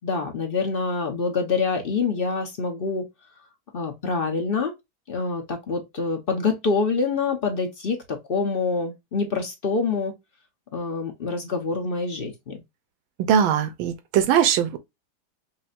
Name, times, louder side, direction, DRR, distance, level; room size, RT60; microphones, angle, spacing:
voice 1, 0.0-3.1 3.7-4.7 5.1-10.1 10.7-12.6, left 4 dB, 45° left, 0.7 m, -26 dB
voice 2, 13.3-14.8, right 8 dB, 80° right, 1.6 m, -20 dB
5.7 x 2.2 x 2.5 m
omnidirectional pair, 2.2 m